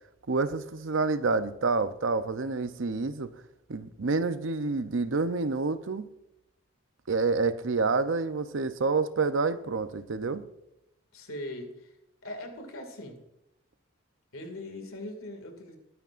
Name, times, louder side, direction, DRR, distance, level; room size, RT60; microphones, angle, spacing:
voice 1, 0.3-3.3 3.7-6.1 7.1-10.4, right 4 dB, 65° right, 12 dB, 0.6 m, -28 dB
voice 2, 11.1-12.0 12.2-13.2 14.3-15.8, left 1 dB, 80° left, 4 dB, 2.2 m, -40 dB
21.5 x 9.3 x 2.5 m, 0.84 s
head